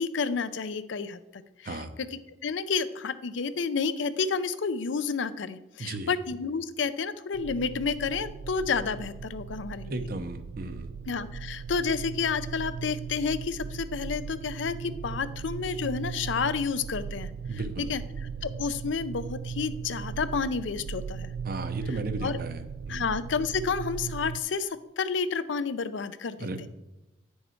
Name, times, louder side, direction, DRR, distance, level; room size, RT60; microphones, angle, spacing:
voice 1, 0.0-1.8 2.1-9.9 11.1-17.6 17.9-18.0 18.4-21.3 22.2-22.4 22.9-26.5, left 5 dB, 75° left, 13 dB, 0.5 m, -30 dB
voice 2, 5.8-6.1 9.9-10.9 17.5-17.9 21.4-23.1 26.4-26.7, right 2 dB, 50° right, 9 dB, 0.7 m, -35 dB
sound 1, 7.3-24.4, right 6 dB, 85° right, 0.3 m, -38 dB
9.4 x 6.5 x 4.5 m, 0.96 s
head